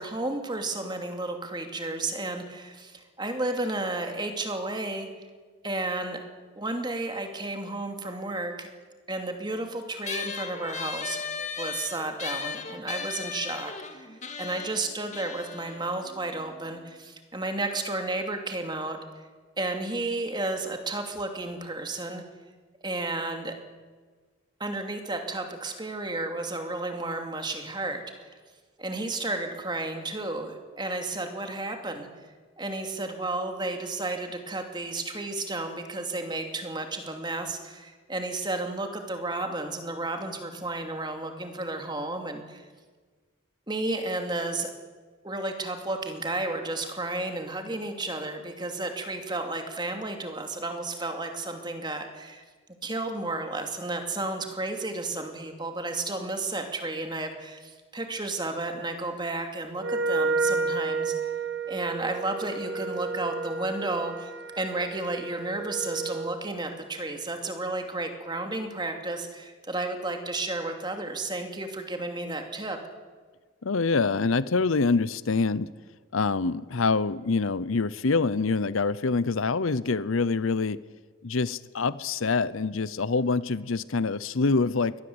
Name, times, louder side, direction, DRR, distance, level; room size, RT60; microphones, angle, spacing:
voice 1, 0.0-5.1 5.6-6.2 6.6-8.7 9.1-19.2 19.6-22.2 22.8-23.5 24.6-28.4 28.8-32.1 32.6-42.6 43.7-44.7 45.2-52.4 52.8-61.3 61.7-72.8, right 2 dB, 20° right, 4 dB, 2.7 m, -32 dB
sound 1, 10.0-16.8, left 5 dB, 35° left, 2.0 m, -37 dB
Wind instrument woodwind instrument, 59.8-66.5, right 4 dB, 55° right, 1.6 m, -31 dB
voice 2, 73.6-75.7 76.1-80.8 81.2-85.0, left 4 dB, 80° left, 18 dB, 0.7 m, -25 dB
23.5 x 18.5 x 8.1 m, 1.4 s
head